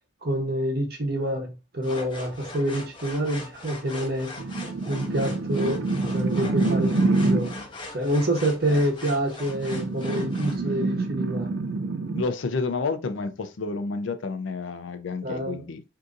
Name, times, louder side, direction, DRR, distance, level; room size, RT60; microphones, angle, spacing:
voice 1, 0.2-4.3 4.9-7.5 7.9-11.5 15.2-15.6, right 1 dB, 55° right, 0.9 m, -27 dB
sound 1, 1.8-10.6, left 2 dB, 25° left, 0.6 m, -40 dB
sound 2, 4.4-7.6 9.4-12.2, right 3 dB, 70° right, 0.4 m, -26 dB
voice 2, 12.1-15.8, left 4 dB, 90° left, 0.5 m, -30 dB
2.7 x 2.5 x 3.6 m
head